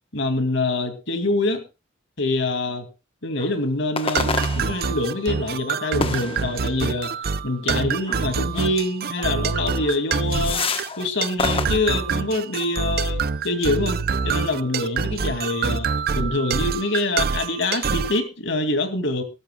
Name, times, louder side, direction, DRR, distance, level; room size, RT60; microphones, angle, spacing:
voice 1, 0.1-1.6 2.2-2.8 3.2-7.1 7.4-10.6 11.0-14.0 14.2-15.9 16.1-19.2, left 2 dB, 65° left, 7 dB, 2.5 m, -25 dB
sound 1, 3.4-3.5 4.0-5.1 6.0-6.9 8.1-8.2 8.5-8.7 9.2-9.3 9.8-9.9 10.3-11.1 11.4-11.7, left 4 dB, 30° left, 1.2 m, -28 dB
sound 2, 4.1-18.2, right 5 dB, 50° right, 0.6 m, -26 dB
20.5 x 12.5 x 2.3 m, 0.28 s
head